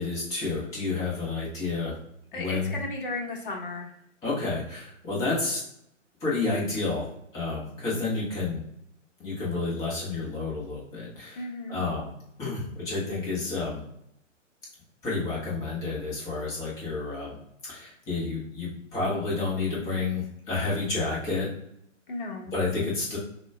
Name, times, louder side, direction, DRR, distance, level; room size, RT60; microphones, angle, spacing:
voice 1, 0.0-1.9 2.3-2.8 4.2-5.6 6.2-7.1 7.3-8.6 9.2-12.1 12.4-13.8 15.0-17.3 17.7-21.5 22.5-23.2, left 3 dB, 10° left, -6 dB, 0.7 m, -30 dB
voice 2, 2.3-3.9 11.4-11.9 20.0-20.1 22.1-22.6, left 2 dB, 45° left, 0 dB, 1.0 m, -35 dB
6.0 x 2.2 x 2.3 m, 0.73 s
figure-of-eight pair, 125°, 39 cm